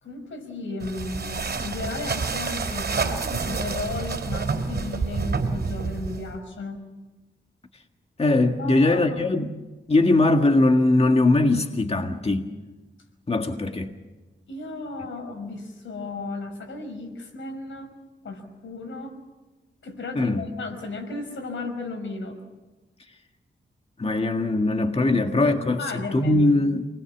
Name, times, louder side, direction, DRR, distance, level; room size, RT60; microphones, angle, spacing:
voice 1, 0.0-6.8 8.6-9.2 14.5-17.9 18.2-19.2 19.8-22.4 25.1-26.5, left 3 dB, 90° left, 5.2 m, -34 dB
sound 1, 0.8-6.4, right 4 dB, 55° right, 3.4 m, -28 dB
voice 2, 8.2-9.5 9.9-12.5 13.3-13.9 20.2-20.5 24.0-26.9, left 2 dB, 30° left, 1.8 m, -21 dB
28.5 x 20.5 x 7.3 m
wide cardioid pair, 85°, 20 cm